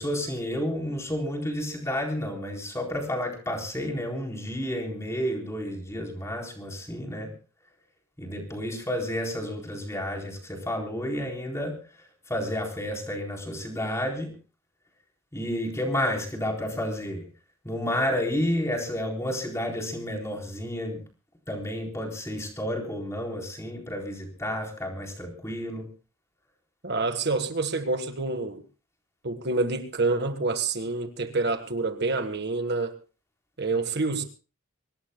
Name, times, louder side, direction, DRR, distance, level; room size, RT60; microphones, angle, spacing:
voice 1, 0.0-7.3 8.2-11.8 12.3-14.3 15.3-17.3 17.6-21.0 21.5-25.9, left 1 dB, 15° left, 4.1 m, -31 dB
voice 2, 26.8-28.6 29.2-33.0 33.6-34.2, right 3 dB, 50° right, 1.6 m, -27 dB
24.5 x 19.0 x 2.3 m
head